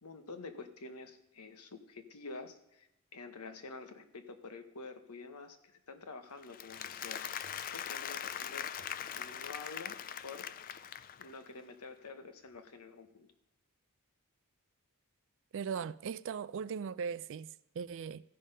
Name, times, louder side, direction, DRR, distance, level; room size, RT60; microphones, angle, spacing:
voice 1, 0.0-7.2 7.7-8.9 9.1-10.0 10.2-10.5 11.2-13.3, left 3 dB, 80° left, 1.1 m, -48 dB
Applause, 6.4-11.5, left 9 dB, 40° left, 0.3 m, -41 dB
voice 2, 15.5-18.2, right 6 dB, 55° right, 0.3 m, -39 dB
14.5 x 5.5 x 5.5 m
head